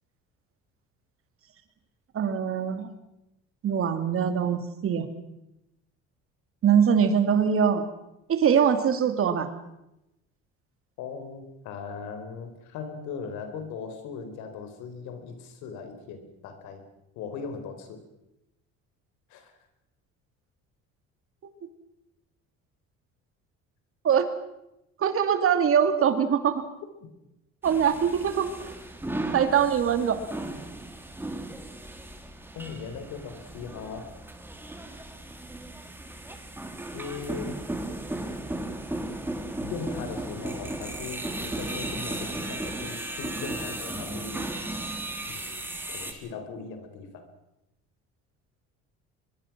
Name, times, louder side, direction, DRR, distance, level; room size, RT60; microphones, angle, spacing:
voice 1, 2.1-2.9 3.6-5.1 6.6-7.8 8.3-9.5 24.0-24.3 25.0-26.6 27.6-28.5 29.3-30.2, right 7 dB, 50° right, 8 dB, 2.7 m, -22 dB
voice 2, 11.0-16.8 17.2-18.0 19.3-19.6 32.5-34.2 36.9-37.6 39.6-44.5 45.3-47.3, left 5 dB, 80° left, 8 dB, 4.3 m, -39 dB
sound 1, 27.6-46.1, right 1 dB, 5° right, 3.0 m, -36 dB
23.5 x 22.5 x 6.1 m, 0.89 s
cardioid pair, 115°, 29 cm